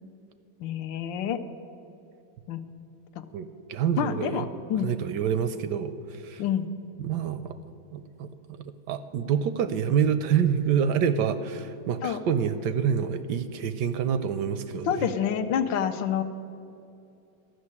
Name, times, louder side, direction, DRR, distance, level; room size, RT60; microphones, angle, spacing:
voice 1, 0.6-1.4 2.5-2.6 4.0-4.9 6.4-6.7 12.0-12.2 14.8-16.2, left 8 dB, 75° left, 9 dB, 1.4 m, -27 dB
voice 2, 3.3-4.4 4.8-6.4 7.0-7.6 7.9-8.3 8.9-15.1, right 8 dB, 75° right, 12 dB, 1.1 m, -27 dB
13.0 x 6.4 x 9.7 m, 2.6 s
omnidirectional pair, 2.1 m